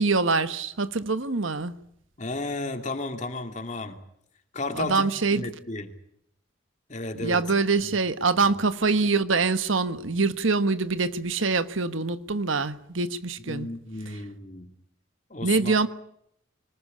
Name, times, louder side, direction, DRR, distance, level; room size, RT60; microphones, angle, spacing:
voice 1, 0.0-1.7 4.7-5.4 7.2-13.7 15.4-15.9, right 4 dB, 85° right, 1.3 m, -24 dB
voice 2, 2.2-4.0 4.5-5.9 6.9-7.4 7.8-8.0 13.4-14.7 15.3-15.8, left 2 dB, 35° left, 2.7 m, -33 dB
25.0 x 19.5 x 8.7 m
head